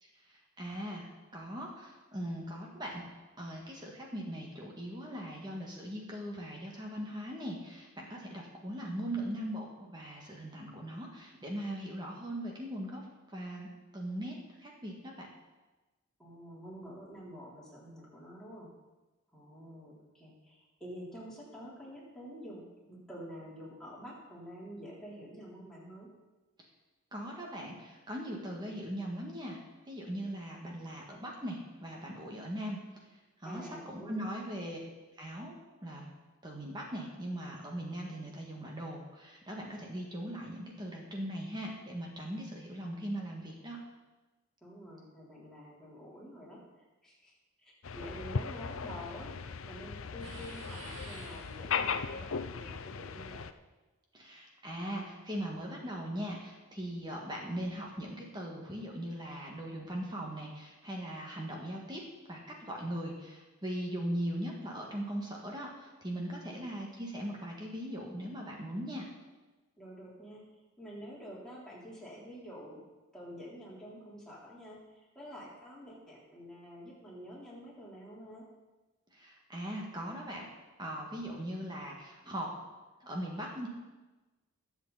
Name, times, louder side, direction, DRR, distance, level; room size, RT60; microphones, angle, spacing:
voice 1, 0.0-3.0 3.4-13.0 13.3-15.3 27.1-29.6 29.9-32.8 33.4-34.8 35.2-35.6 35.8-36.1 36.4-43.8 54.1-62.0 62.3-69.1 79.1-80.4 80.8-82.5 83.0-83.7, equal, 20° right, -1 dB, 1.7 m, -40 dB
voice 2, 16.2-18.7 19.3-26.1 33.4-34.5 44.6-46.6 47.0-47.3 47.6-49.3 49.6-53.5 66.5-66.7 69.8-70.4 70.8-72.8 73.1-78.4, equal, 5° left, -7 dB, 3.6 m, -48 dB
sound 1, 47.8-53.5, left 6 dB, 70° left, 0.6 m, -37 dB
sound 2, 50.2-52.0, right 1 dB, 85° right, 3.0 m, -49 dB
21.5 x 7.7 x 4.1 m, 1.1 s
head